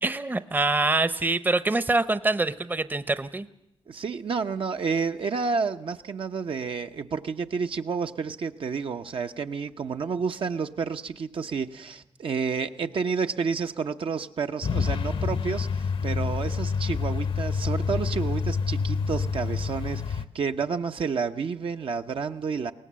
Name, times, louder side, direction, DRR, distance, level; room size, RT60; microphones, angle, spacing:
voice 1, 0.0-3.5, right 2 dB, 20° right, 14 dB, 0.7 m, -25 dB
voice 2, 3.9-22.7, right 5 dB, 70° right, 6 dB, 0.8 m, -30 dB
Truck, 14.6-20.2, left 5 dB, 75° left, 0.9 m, -27 dB
22.5 x 18.0 x 7.5 m, 0.83 s
cardioid pair, 75°, 9 cm